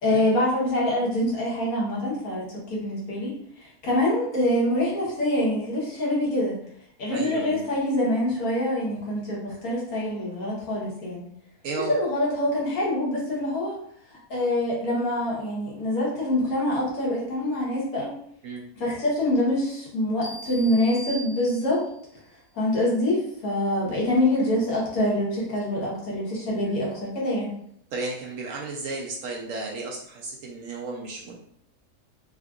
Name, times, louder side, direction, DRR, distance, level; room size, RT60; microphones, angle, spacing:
voice 1, 0.0-6.5 7.0-11.2 11.9-13.8 14.3-18.1 18.8-21.8 22.5-27.5, left 1 dB, 70° left, -4 dB, 1.5 m, -25 dB
voice 2, 7.1-7.6 11.6-11.9 18.4-18.6 26.5-26.9 27.9-31.3, right 3 dB, 70° right, -1 dB, 0.8 m, -34 dB
sound 1, 20.2-22.0, right 1 dB, 50° left, 1.0 m, -40 dB
3.6 x 2.4 x 2.3 m, 0.68 s
omnidirectional pair, 1.6 m